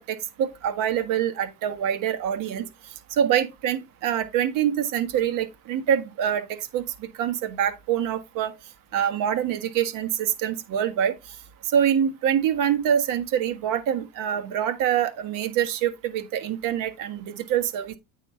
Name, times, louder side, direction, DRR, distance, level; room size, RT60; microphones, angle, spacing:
voice 1, 0.0-2.6 3.2-6.4 6.7-8.5 8.9-11.1 11.7-18.0, right 9 dB, 45° right, 1.4 m, -25 dB
9.0 x 4.1 x 4.3 m
supercardioid pair, 140°, 43 cm